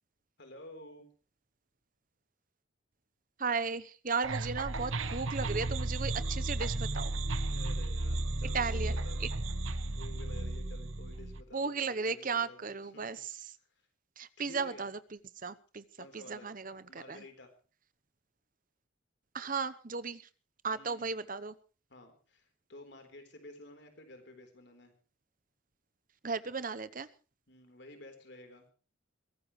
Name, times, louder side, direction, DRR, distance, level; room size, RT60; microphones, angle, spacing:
voice 1, 0.4-1.1 7.5-9.2 9.8-13.2 13.6-13.8 14.4-14.9 16.0-16.5 16.9-17.5 20.7-21.3 21.9-24.9 27.5-28.7, left 1 dB, 55° left, 6 dB, 3.9 m, -52 dB
voice 2, 3.4-7.1 8.5-9.3 11.5-13.6 14.2-17.2 19.3-20.3 20.6-21.6 26.2-27.1, right 5 dB, 40° right, 15 dB, 0.9 m, -36 dB
sound 1, 4.2-11.4, right 2 dB, 75° right, 1.2 m, -34 dB
23.0 x 17.5 x 3.2 m, 0.37 s
head